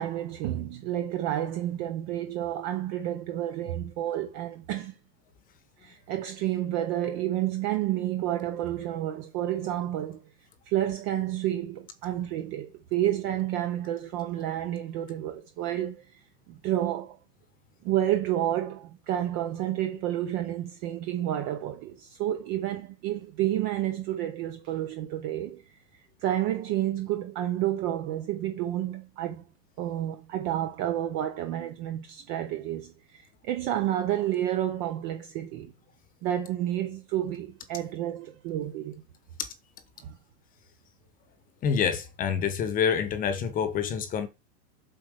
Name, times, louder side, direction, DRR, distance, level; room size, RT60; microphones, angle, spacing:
voice 1, 0.0-4.9 5.8-10.2 10.7-16.2 16.5-17.2 17.8-25.7 26.2-29.4 29.8-35.7 36.2-39.0 40.0-40.2, right 12 dB, 20° right, 0.5 m, -30 dB
voice 2, 41.6-44.3, left 7 dB, 15° left, 1.0 m, -27 dB
7.7 x 4.4 x 6.4 m
hypercardioid pair, 150°, 49 cm